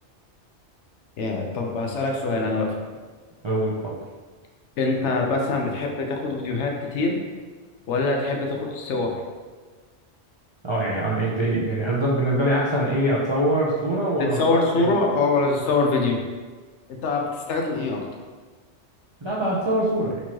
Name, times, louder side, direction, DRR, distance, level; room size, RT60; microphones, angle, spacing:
voice 1, 1.2-2.8 4.8-7.2 7.9-9.1 14.2-16.2 17.0-18.0, left 3 dB, 80° left, 1 dB, 1.0 m, -24 dB
voice 2, 3.4-3.9 10.6-14.8 19.2-20.2, right 1 dB, 40° right, -6 dB, 0.4 m, -23 dB
4.3 x 3.0 x 2.8 m, 1.4 s
omnidirectional pair, 1.2 m